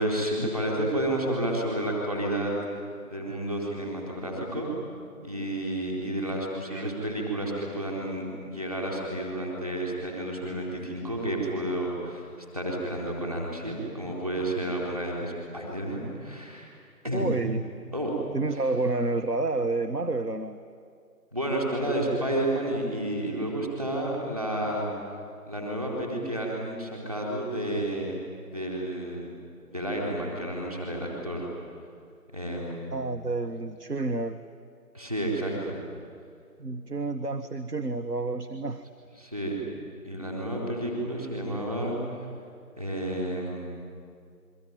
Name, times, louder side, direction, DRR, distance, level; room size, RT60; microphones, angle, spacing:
voice 1, 0.0-2.5 3.0-4.7 5.2-12.3 12.5-16.7 17.0-17.3 17.9-18.1 21.3-24.9 25.5-28.2 28.4-29.3 29.7-31.5 32.3-32.9 34.9-35.8 39.2-39.6 40.0-42.0 42.8-43.7, right 1 dB, 25° right, -2 dB, 4.1 m, -31 dB
voice 2, 17.1-17.6 18.3-20.6 32.9-34.4 36.6-38.8, right 3 dB, 75° right, 8 dB, 1.5 m, -29 dB
27.5 x 23.5 x 9.2 m, 2.3 s
figure-of-eight pair, 180°, 47 cm